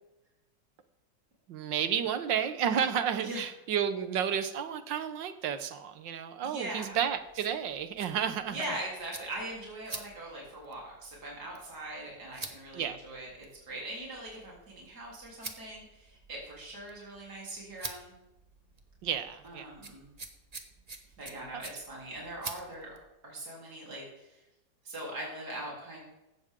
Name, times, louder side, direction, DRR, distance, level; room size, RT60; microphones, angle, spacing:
voice 1, 1.5-8.6 12.7-13.0 19.0-19.7, right 8 dB, 80° right, 10 dB, 1.7 m, -31 dB
voice 2, 6.4-7.0 8.5-18.2 19.4-20.1 21.2-23.0 23.2-24.4 24.8-26.0, right 1 dB, 60° right, -4 dB, 4.2 m, -41 dB
sound 1, 6.9-23.1, right 3 dB, 25° right, 1.1 m, -48 dB
16.0 x 12.0 x 3.7 m, 0.96 s
omnidirectional pair, 2.0 m